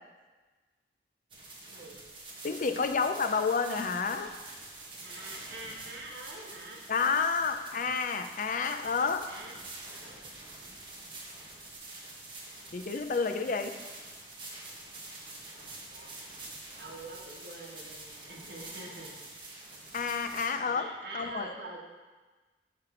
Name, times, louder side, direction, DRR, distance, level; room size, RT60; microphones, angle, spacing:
sound 1, 1.3-20.5, right 2 dB, 30° right, 1.2 m, -46 dB
voice 1, 1.6-2.0 5.0-6.8 7.7-7.8 9.3-10.2 10.9-11.0 15.9-16.2 16.8-19.2 20.6-21.9, right 2 dB, 75° right, -2 dB, 1.5 m, -45 dB
voice 2, 2.4-4.3 6.9-9.3 12.7-13.8 19.9-20.9 21.1-21.5, left 5 dB, 50° left, 8 dB, 0.5 m, -30 dB
8.7 x 3.4 x 6.1 m, 1.3 s
head